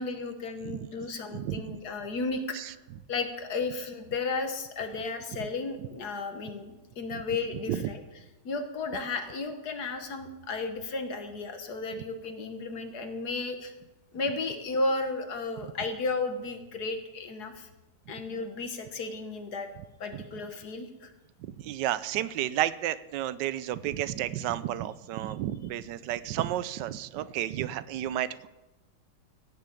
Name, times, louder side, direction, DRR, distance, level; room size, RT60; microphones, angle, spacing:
voice 1, 0.0-2.8 3.1-8.0 8.5-13.7 14.1-17.7 18.1-19.7 20.0-21.1, left 3 dB, 65° left, 6 dB, 1.7 m, -34 dB
voice 2, 1.3-1.6 2.5-2.7 7.7-7.9 20.1-20.2 21.4-28.5, right 12 dB, 90° right, 16 dB, 1.3 m, -32 dB
15.5 x 6.9 x 8.3 m, 1.1 s
omnidirectional pair, 1.8 m